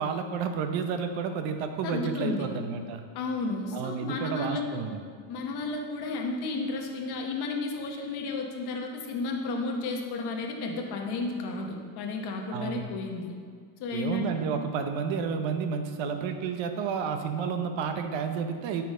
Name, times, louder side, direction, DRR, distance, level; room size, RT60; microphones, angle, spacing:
voice 1, 0.0-3.0 3.7-5.0 12.5-12.8 13.9-18.8, right 6 dB, 65° right, 6 dB, 0.8 m, -31 dB
voice 2, 1.8-2.5 3.1-4.8 5.3-13.3 13.8-14.4, left 3 dB, 50° left, 1 dB, 1.1 m, -32 dB
8.2 x 5.8 x 3.7 m, 2.1 s
cardioid pair, 180°, 48 cm